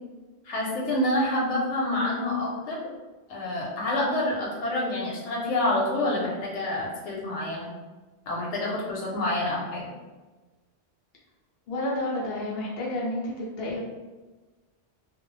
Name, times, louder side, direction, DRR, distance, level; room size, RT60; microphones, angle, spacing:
voice 1, 0.4-2.8 3.3-7.7 8.3-9.9, left 1 dB, 85° left, -4 dB, 1.0 m, -27 dB
voice 2, 11.7-13.8, left 1 dB, 65° left, -4 dB, 0.8 m, -30 dB
2.2 x 2.0 x 3.1 m, 1.2 s
omnidirectional pair, 1.1 m